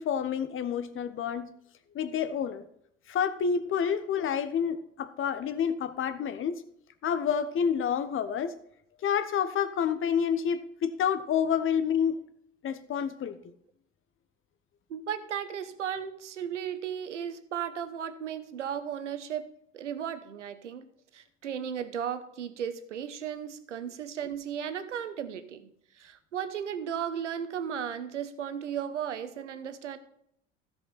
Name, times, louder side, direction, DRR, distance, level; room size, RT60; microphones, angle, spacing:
voice 1, 0.0-1.5 1.9-2.6 3.1-6.6 7.0-8.5 9.0-12.2 12.6-13.4, left 7 dB, 35° left, 1.1 m, -28 dB
voice 2, 14.9-19.5 19.7-25.7 25.9-30.0, right 8 dB, 80° right, 1.0 m, -35 dB
16.0 x 5.4 x 4.1 m
figure-of-eight pair, 70°, 36 cm